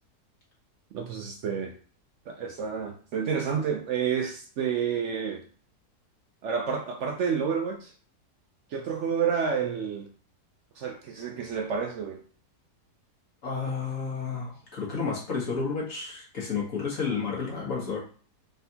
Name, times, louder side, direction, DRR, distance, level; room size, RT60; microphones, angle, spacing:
voice 1, 0.9-1.7 2.3-5.4 6.4-7.9 8.7-10.1 10.8-12.2, right 6 dB, 75° right, 3 dB, 0.6 m, -29 dB
voice 2, 13.4-18.0, left 5 dB, 55° left, -4 dB, 1.6 m, -31 dB
4.1 x 3.5 x 2.8 m, 0.42 s
omnidirectional pair, 1.7 m